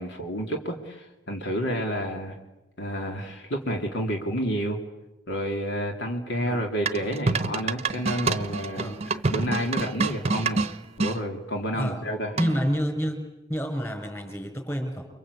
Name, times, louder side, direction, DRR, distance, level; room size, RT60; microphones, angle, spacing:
voice 1, 0.0-2.4 2.8-4.8 5.3-8.9 9.3-10.6 11.0-12.3, equal, 60° left, 2 dB, 3.2 m, -30 dB
sound 1, 6.9-11.2 12.4-12.8, right 3 dB, 30° right, 1.0 m, -27 dB
voice 2, 12.4-13.2 13.5-15.1, equal, 15° left, 5 dB, 5.4 m, -28 dB
29.5 x 24.0 x 8.4 m, 1.0 s
head